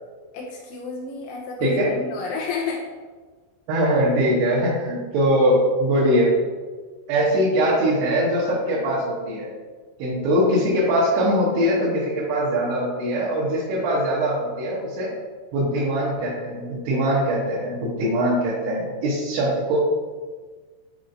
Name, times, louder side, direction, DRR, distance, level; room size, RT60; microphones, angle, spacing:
voice 1, 0.3-2.8, left 4 dB, 85° left, -3 dB, 3.2 m, -30 dB
voice 2, 1.6-1.9 3.7-6.3 7.1-9.5 10.0-15.1 15.5-19.8, equal, 75° right, -7 dB, 2.8 m, -22 dB
8.6 x 4.3 x 2.6 m, 1.4 s
omnidirectional pair, 5.5 m